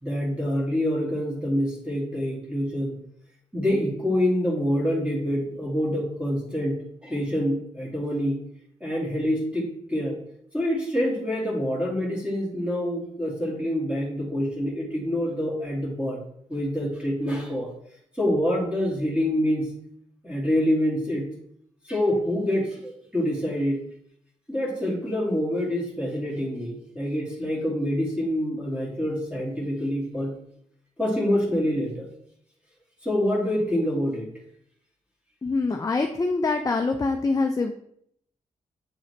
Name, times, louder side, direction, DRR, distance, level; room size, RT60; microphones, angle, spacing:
voice 1, 0.0-3.0 3.5-8.4 8.8-10.2 10.5-16.2 16.5-17.7 18.1-19.7 20.2-21.3 21.9-23.8 24.5-30.3 31.0-32.1 33.0-34.3, equal, 10° right, -4 dB, 2.1 m, -26 dB
voice 2, 35.4-37.7, left 3 dB, 25° left, 5 dB, 0.5 m, -24 dB
8.1 x 3.8 x 3.2 m, 0.68 s
cardioid pair, 70°, 14 cm